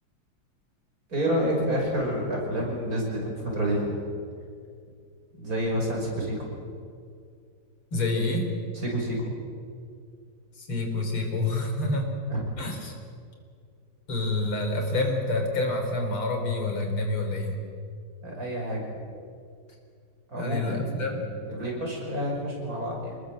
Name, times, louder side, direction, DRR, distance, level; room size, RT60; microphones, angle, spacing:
voice 1, 1.1-4.0 5.4-6.5 8.8-9.3 12.3-12.4 18.2-18.9 20.3-23.2, equal, 40° right, -1 dB, 6.0 m, -29 dB
voice 2, 7.9-8.5 10.6-12.1 12.6-12.9 14.1-17.5 20.3-21.2, left 2 dB, 85° left, 3 dB, 4.5 m, -28 dB
26.0 x 20.5 x 7.7 m, 2.3 s
omnidirectional pair, 2.3 m